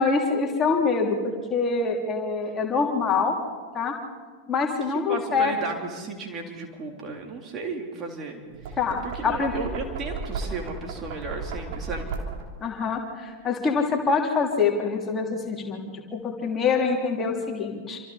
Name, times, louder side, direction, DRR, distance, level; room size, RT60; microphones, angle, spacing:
voice 1, 0.0-3.4 3.7-3.9 4.5-5.5 8.8-9.5 12.6-15.8 16.1-18.0, left 4 dB, 20° left, 0 dB, 3.2 m, -25 dB
voice 2, 4.9-12.1, right 3 dB, 25° right, 1 dB, 3.6 m, -35 dB
Knock, 8.5-12.6, right 4 dB, 50° right, 3.5 m, -34 dB
27.5 x 26.5 x 4.3 m, 1.5 s
figure-of-eight pair, 90°, 0 cm